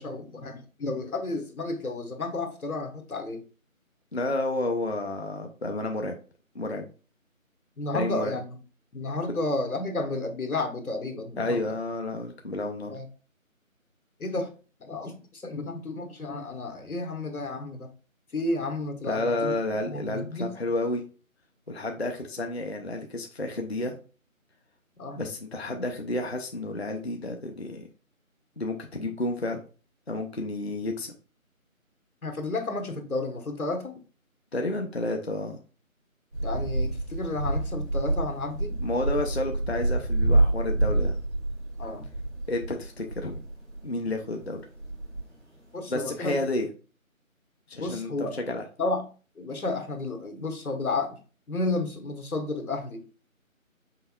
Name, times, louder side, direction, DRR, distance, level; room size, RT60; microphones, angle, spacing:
voice 1, 0.0-3.4 7.8-8.4 8.9-11.6 12.9-13.0 14.2-14.5 14.8-17.9 18.3-20.5 25.0-25.2 32.2-33.9 36.4-38.8 41.8-42.0 45.7-46.4 47.8-48.3 48.8-49.0 49.4-51.2 51.5-53.0, left 2 dB, 90° left, 4 dB, 1.2 m, -32 dB
voice 2, 4.1-6.1 6.5-6.9 7.9-8.4 11.4-12.9 19.0-21.0 21.7-23.9 25.2-27.9 28.6-29.6 30.1-31.1 34.5-35.6 38.8-41.1 42.5-43.4 43.8-44.6 45.9-46.7 47.7-48.6, left 2 dB, 50° left, 3 dB, 0.5 m, -31 dB
sound 1, 36.3-44.1 44.4-45.2 45.9-46.0 46.3-46.4, right 2 dB, 50° right, 2.3 m, -27 dB
5.6 x 3.4 x 2.2 m, 0.36 s
figure-of-eight pair, 175°, 42 cm